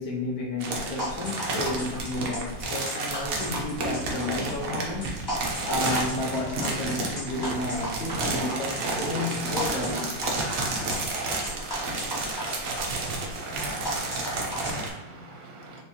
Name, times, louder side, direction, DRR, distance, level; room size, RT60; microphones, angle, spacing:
voice 1, 0.0-10.3, left 2 dB, 65° left, 1.0 m, -32 dB
sound 1, 0.6-14.9, right 2 dB, 60° right, 1.1 m, -31 dB
sound 2, 1.0-14.7, equal, 25° left, 0.5 m, -36 dB
voice 2, 12.7-15.8, right 2 dB, 75° right, 1.5 m, -44 dB
4.5 x 3.3 x 2.8 m
omnidirectional pair, 2.0 m